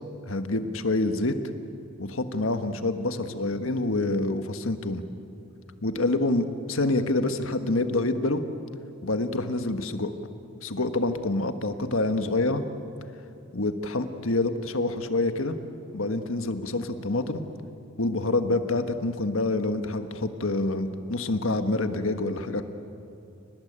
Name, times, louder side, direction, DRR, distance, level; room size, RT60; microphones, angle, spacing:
voice 1, 0.3-1.3 2.0-5.0 5.8-8.4 9.0-10.1 10.6-12.6 13.5-15.6 15.9-17.4 18.0-22.6, left 2 dB, 70° left, 8 dB, 1.5 m, -27 dB
29.5 x 19.0 x 8.9 m, 2.7 s
head